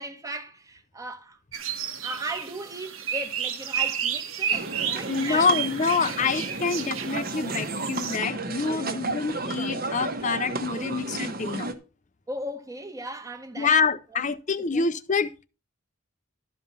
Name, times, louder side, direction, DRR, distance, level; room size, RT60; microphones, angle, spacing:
voice 1, 0.0-1.4 2.0-5.7 6.0-6.1 8.7-9.1 12.3-13.7 14.1-14.3 14.6-14.9, right 1 dB, 15° right, 1.2 m, -37 dB
sound 1, 1.5-8.2, right 8 dB, 85° right, 1.6 m, -32 dB
sound 2, 4.5-11.7, right 2 dB, 45° right, 1.3 m, -33 dB
voice 2, 5.1-11.7 13.6-15.5, left 5 dB, 35° left, 0.6 m, -26 dB
12.0 x 5.5 x 5.6 m
head